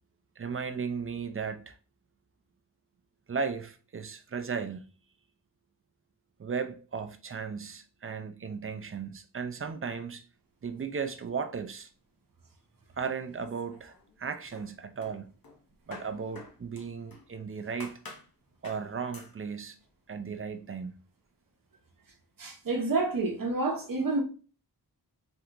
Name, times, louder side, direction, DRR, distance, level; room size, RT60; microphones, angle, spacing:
voice 1, 0.4-1.8 3.3-4.8 6.4-10.2 10.6-11.9 13.0-15.3 15.9-18.0 18.6-19.8 20.1-21.0, right 5 dB, 35° right, 0.4 m, -36 dB
sound 1, 13.4-14.2 14.5-17.3 17.8-18.3 18.6-18.9 19.1-19.4, left 3 dB, 60° left, 0.9 m, -49 dB
voice 2, 22.4-24.2, right 3 dB, 60° right, 0.8 m, -29 dB
3.5 x 2.8 x 2.5 m
wide cardioid pair, 65°, 39 cm